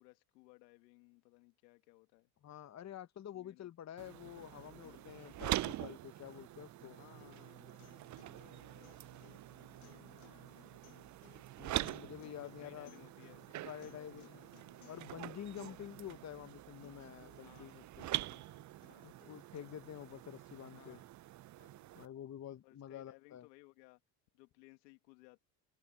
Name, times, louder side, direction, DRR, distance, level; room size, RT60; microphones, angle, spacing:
voice 1, 0.0-2.3 3.3-3.7 5.2-5.4 6.9-10.9 11.6-14.5 15.5-15.8 17.4-17.7 18.0-19.2 20.8-21.1 21.6-21.9 22.6-24.0 24.3-25.4, left 24 dB, 90° left, 2.2 m, -63 dB
voice 2, 2.4-7.0 11.6-12.9 13.6-14.4 14.9-18.1 19.0-21.0 22.0-23.5, left 10 dB, 35° left, 1.0 m, -49 dB
sound 1, 4.0-22.1, right 15 dB, 40° right, 0.5 m, -45 dB
sound 2, 4.3-20.4, left 21 dB, 70° left, 1.6 m, -65 dB
open air
supercardioid pair, 85°, 49 cm